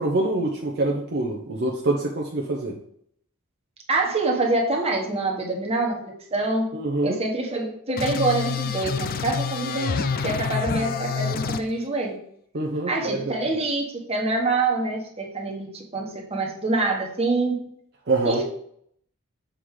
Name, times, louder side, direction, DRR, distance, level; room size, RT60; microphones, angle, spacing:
voice 1, 0.0-2.8 6.7-7.2 12.5-13.4 18.1-18.4, right 2 dB, 50° right, -1 dB, 0.8 m, -25 dB
voice 2, 3.9-6.7 7.0-12.2 12.9-17.6 18.2-18.4, right 2 dB, 30° right, 0 dB, 1.3 m, -26 dB
sound 1, 8.0-11.6, left 5 dB, 45° left, 0.4 m, -27 dB
6.9 x 3.8 x 4.8 m, 0.67 s
head